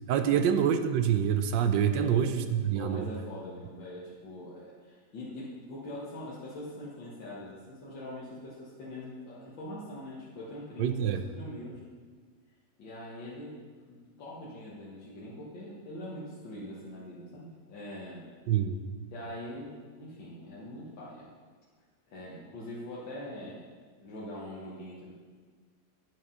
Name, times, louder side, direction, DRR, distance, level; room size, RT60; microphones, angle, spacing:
voice 1, 0.1-3.1 10.8-11.2 18.5-18.8, right 8 dB, 80° right, 9 dB, 1.3 m, -26 dB
voice 2, 1.9-2.2 2.8-11.8 12.8-13.6 13.9-18.3 19.1-21.3 22.1-23.6 24.0-25.1, left 1 dB, 85° left, -7 dB, 2.1 m, -43 dB
9.5 x 6.0 x 5.6 m, 1.5 s
omnidirectional pair, 2.0 m